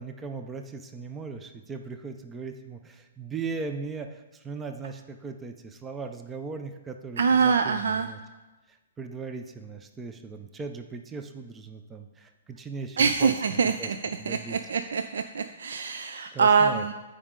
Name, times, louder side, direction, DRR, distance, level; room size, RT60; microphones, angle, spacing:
voice 1, 0.0-8.2 8.7-13.9 14.2-14.6 16.3-16.8, right 4 dB, 10° right, 6 dB, 0.5 m, -38 dB
voice 2, 7.2-8.1 13.0-14.0 14.3-16.9, right 5 dB, 80° right, 8 dB, 0.5 m, -24 dB
14.0 x 5.0 x 3.7 m, 1.1 s
hypercardioid pair, 155°, 0 cm